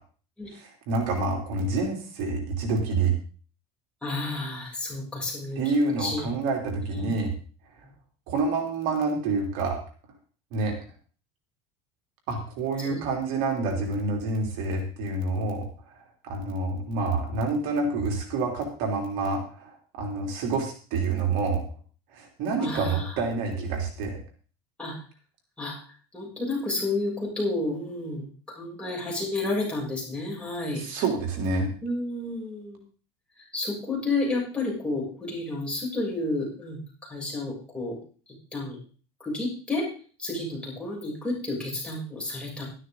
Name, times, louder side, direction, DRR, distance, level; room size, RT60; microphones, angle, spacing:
voice 1, 0.5-3.1 5.5-7.3 8.3-9.8 10.5-10.7 12.3-15.7 16.2-21.6 22.1-24.2 30.7-31.7, right 3 dB, 65° right, 1 dB, 3.4 m, -28 dB
voice 2, 4.0-6.3 7.0-7.1 12.9-13.0 13.6-13.8 22.6-23.1 23.5-23.8 24.8-24.9 25.6-25.8 26.1-30.8 31.8-32.8 33.5-38.0 38.5-38.8 39.2-39.9 40.2-42.6, left 2 dB, 5° left, -4 dB, 7.4 m, -31 dB
12.5 x 12.5 x 3.9 m, 0.39 s
supercardioid pair, 130°, 15 cm